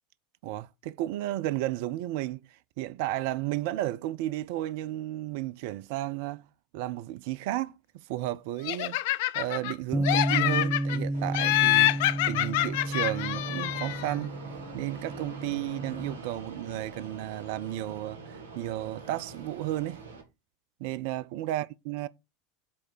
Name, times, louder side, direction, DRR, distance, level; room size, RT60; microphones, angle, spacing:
voice 1, 0.4-6.5 6.7-7.8 8.1-14.4 14.7-20.0 20.8-22.1, right 15 dB, 60° right, 0.4 m, -33 dB
Laughter, 8.6-9.7 10.0-11.0 11.3-14.1, left 17 dB, 60° left, 0.4 m, -26 dB
Bass guitar, 9.9-16.2, right 1 dB, 10° right, 0.9 m, -32 dB
Fixed-wing aircraft airplane, 11.1-20.2, right 4 dB, 75° right, 1.6 m, -44 dB
8.5 x 3.2 x 6.2 m
figure-of-eight pair, 80°, 0 cm